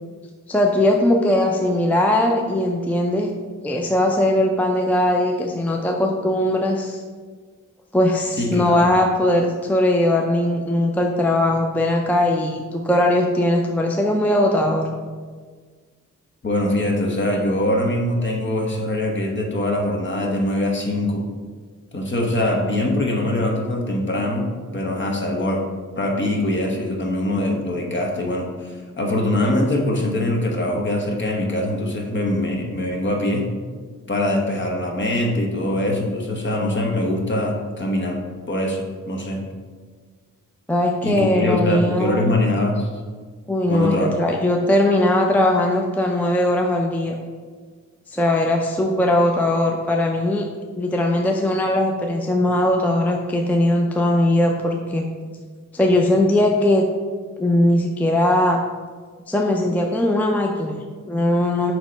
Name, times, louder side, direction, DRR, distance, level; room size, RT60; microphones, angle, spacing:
voice 1, 0.5-3.3 3.6-7.0 7.9-14.9 40.7-42.3 43.5-47.1 48.1-50.5 50.8-55.1 55.7-56.8 57.4-58.6 59.3-61.7, left 1 dB, 5° left, 1 dB, 0.4 m, -19 dB
voice 2, 8.4-8.9 16.4-21.2 21.9-25.6 26.0-33.4 34.1-38.2 38.5-38.8 39.1-39.4 41.0-42.9 43.7-44.3, left 1 dB, 40° left, 1 dB, 1.0 m, -23 dB
6.3 x 3.0 x 5.1 m, 1.5 s
wide cardioid pair, 95°, 30 cm